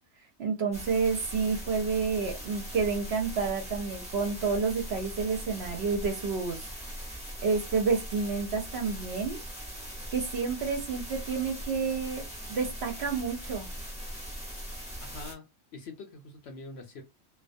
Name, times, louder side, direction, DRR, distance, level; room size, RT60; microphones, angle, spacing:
voice 1, 0.4-6.7 7.4-9.4 10.1-12.2 12.5-13.7, right 5 dB, 60° right, 0.8 m, -29 dB
sound 1, 0.7-15.3, equal, 5° right, 0.6 m, -40 dB
voice 2, 15.0-15.5 15.7-17.0, left 3 dB, 65° left, 0.7 m, -44 dB
2.2 x 2.2 x 2.5 m
omnidirectional pair, 1.4 m